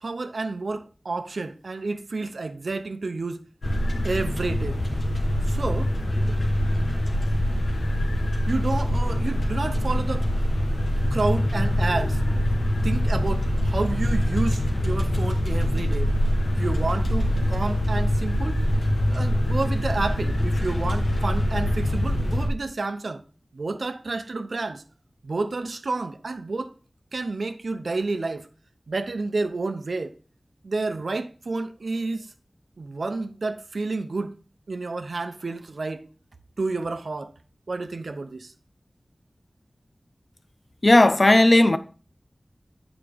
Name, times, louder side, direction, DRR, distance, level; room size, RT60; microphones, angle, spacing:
voice 1, 0.0-3.4 4.0-4.8 5.4-5.9 8.5-10.3 11.1-12.2 12.8-16.1 16.4-18.6 19.1-23.2 23.5-24.8 25.2-26.7 27.1-28.5 28.9-30.1 30.6-32.3 32.8-34.4 34.7-36.0 36.6-37.3 37.7-38.5, right 3 dB, 85° right, 0.7 m, -30 dB
sound 1, 3.6-22.5, left 1 dB, 80° left, 1.8 m, -24 dB
voice 2, 40.8-41.8, left 1 dB, 45° left, 0.6 m, -15 dB
8.9 x 4.9 x 5.1 m
wide cardioid pair, 70°, 0 cm